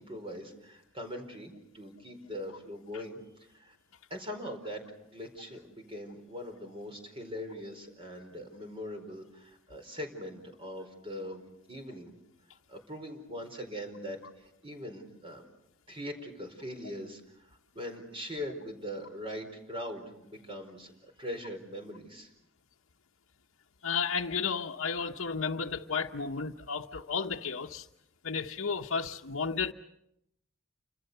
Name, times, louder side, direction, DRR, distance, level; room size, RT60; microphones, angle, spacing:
voice 1, 0.0-3.8 4.1-11.4 11.7-12.1 12.7-15.4 15.9-22.3, equal, 25° right, 5 dB, 4.5 m, -41 dB
voice 2, 23.8-27.9 28.2-29.7, left 5 dB, 85° left, 0 dB, 1.0 m, -33 dB
30.0 x 26.0 x 6.8 m, 0.81 s
head